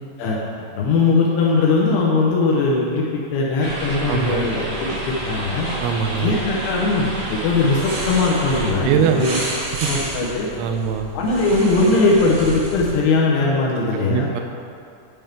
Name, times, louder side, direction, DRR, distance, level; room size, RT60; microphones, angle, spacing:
voice 1, 0.7-5.7 6.2-9.3 9.9-10.5 11.1-14.3, left 3 dB, 75° left, -3 dB, 2.6 m, -19 dB
sound 1, 3.6-8.7, right 1 dB, 50° right, 1.4 m, -29 dB
voice 2, 4.1-4.5 5.8-6.3 8.8-9.2 9.8-9.9 10.6-11.1 13.9-14.4, right 8 dB, 90° right, 5 dB, 3.0 m, -22 dB
sound 2, 7.8-12.9, right 2 dB, 65° right, 1.9 m, -30 dB
10.5 x 5.2 x 3.5 m, 2.6 s
omnidirectional pair, 5.3 m